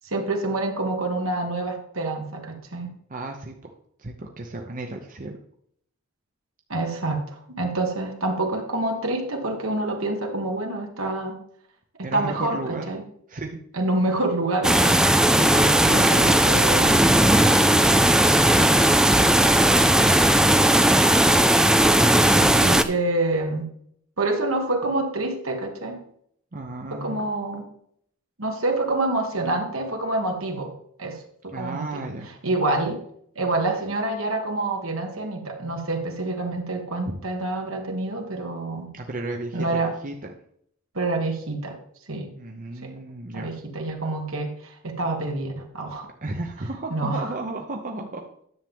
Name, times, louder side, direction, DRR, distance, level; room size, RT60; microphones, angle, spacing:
voice 1, 0.0-2.9 6.7-11.4 12.0-13.0 13.7-15.2 15.9-16.9 22.3-23.7 24.2-26.0 26.9-27.7 28.4-30.7 31.0-32.0 32.4-33.0 33.4-38.9 39.5-39.9 40.9-41.8 42.1-42.3 42.8-42.9 43.3-46.1 46.9-47.3, right 2 dB, 70° right, 3 dB, 1.7 m, -27 dB
voice 2, 3.1-3.7 4.0-5.3 12.0-12.9 13.3-13.6 15.3-17.1 26.5-27.2 31.5-32.3 37.1-37.2 38.9-40.3 42.3-43.5 46.2-48.3, right 2 dB, 40° right, 3 dB, 0.8 m, -33 dB
sound 1, 14.6-22.8, right 1 dB, 5° right, 0.4 m, -17 dB
10.5 x 7.4 x 3.6 m, 0.68 s
head